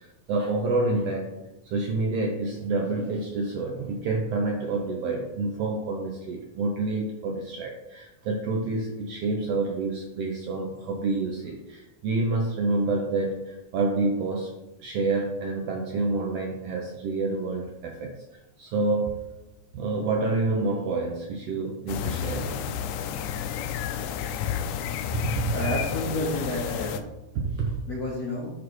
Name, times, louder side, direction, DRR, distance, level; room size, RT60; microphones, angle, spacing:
voice 1, 0.0-1.3 1.6-14.5 14.8-18.1 18.6-19.2 19.7-22.5 25.1-25.5 27.3-27.8, right 3 dB, 80° right, 1 dB, 1.4 m, -28 dB
sound 1, 21.9-27.0, left 8 dB, 85° left, 2.0 m, -31 dB
voice 2, 25.5-27.0 27.9-28.5, left 2 dB, 65° left, -5 dB, 0.9 m, -30 dB
11.0 x 4.1 x 3.1 m, 0.97 s
omnidirectional pair, 3.5 m